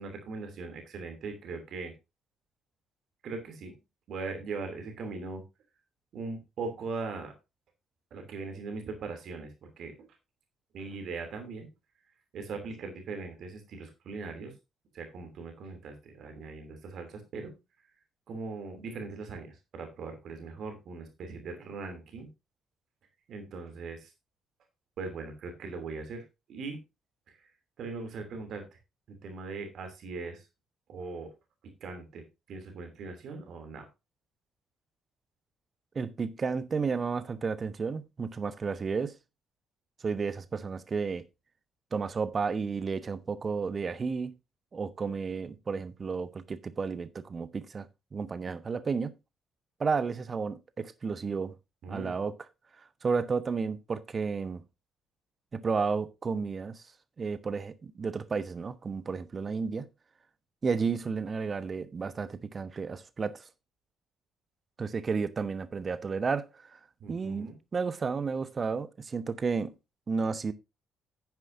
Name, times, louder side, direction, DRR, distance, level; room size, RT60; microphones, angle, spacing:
voice 1, 0.0-1.9 3.2-3.8 4.1-5.4 6.1-7.3 8.1-10.1 10.7-11.7 12.3-14.5 14.9-17.5 18.3-22.3 23.3-24.1 25.0-26.2 26.5-26.8 27.3-27.4 27.8-28.7 29.1-30.5 30.9-31.3 31.8-33.9 51.8-52.2 67.0-67.6, right 4 dB, 55° right, 2.9 m, -40 dB
voice 2, 35.9-39.1 40.0-41.2 41.9-44.3 44.7-49.1 49.8-51.5 51.9-52.4 53.0-54.6 55.5-56.8 57.2-59.8 60.6-63.4 64.8-66.8 67.1-69.7 70.1-70.5, right 5 dB, 35° right, 1.1 m, -32 dB
10.5 x 9.7 x 2.7 m
figure-of-eight pair, 45°, 0 cm